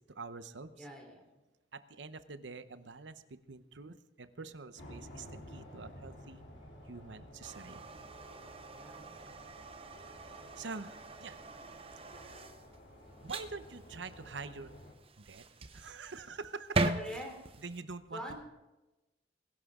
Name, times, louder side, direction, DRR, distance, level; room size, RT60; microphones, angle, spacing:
voice 1, 0.1-0.8 1.7-6.4 6.9-7.8 10.6-11.4 12.2-12.4 13.2-14.7 15.2-17.0 17.6-18.2, right 4 dB, 85° right, 12 dB, 0.9 m, -46 dB
voice 2, 0.7-1.4 8.7-9.1 16.9-17.3 18.1-18.5, equal, 5° left, 0 dB, 3.4 m, -44 dB
sound 1, 4.8-14.9, left 1 dB, 90° left, 3.1 m, -53 dB
sound 2, 7.4-17.8, right 2 dB, 30° right, 0.7 m, -40 dB
21.5 x 11.5 x 3.7 m, 1.0 s
head